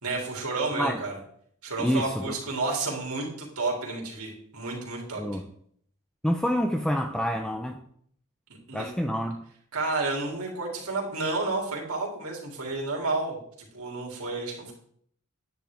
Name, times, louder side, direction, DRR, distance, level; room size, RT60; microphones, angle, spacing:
voice 1, 0.0-1.2 1.6-5.2 8.7-8.9 9.7-14.7, right 3 dB, 80° right, -1 dB, 3.3 m, -31 dB
voice 2, 1.8-2.3 5.2-5.5 6.2-7.8 8.7-9.4, equal, 5° left, 4 dB, 0.5 m, -27 dB
10.5 x 9.9 x 3.6 m, 0.65 s
head